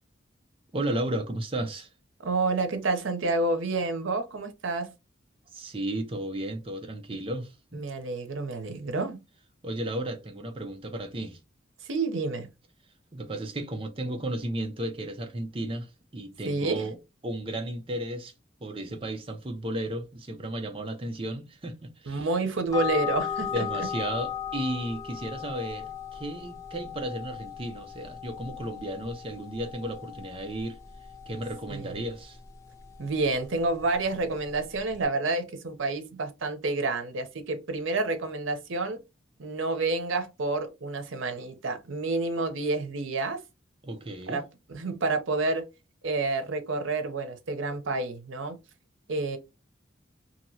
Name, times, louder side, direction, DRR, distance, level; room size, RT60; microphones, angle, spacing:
voice 1, 0.7-1.9 5.5-7.8 9.6-11.4 13.1-17.0 17.2-18.3 18.6-22.3 23.5-30.8 31.3-32.4 43.8-44.4, right 1 dB, 30° right, 0.5 m, -34 dB
voice 2, 2.2-4.9 7.7-9.2 11.8-12.5 16.4-16.9 22.1-23.9 31.7-32.0 33.0-39.0 39.4-43.4 44.3-44.5 44.7-45.7 46.0-48.6 49.1-49.4, right 3 dB, 85° right, 0.7 m, -29 dB
sound 1, 22.7-35.1, left 8 dB, 15° left, 0.5 m, -38 dB
2.9 x 2.7 x 2.7 m
head